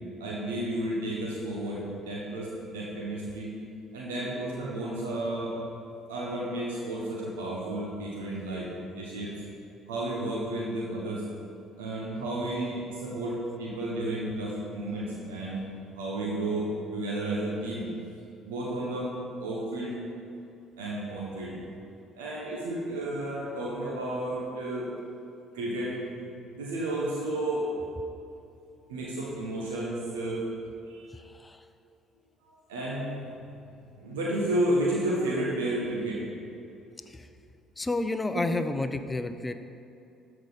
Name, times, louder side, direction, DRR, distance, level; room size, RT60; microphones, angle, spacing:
voice 1, 0.2-3.6 3.9-5.7 6.1-8.7 8.9-9.3 9.9-11.2 11.8-15.6 16.0-17.9 18.4-19.1 19.4-20.0 20.8-21.6 22.1-24.9 25.5-26.0 26.2-27.7 28.9-30.5 30.9-31.1 32.7-36.2 38.4-38.5, right 1 dB, 80° right, -4 dB, 1.2 m, -32 dB
voice 2, 31.1-31.6 37.1-37.3 37.8-39.5, left 2 dB, 20° left, 9 dB, 0.6 m, -31 dB
12.5 x 5.0 x 4.1 m, 2.7 s
hypercardioid pair, 50°, 0 cm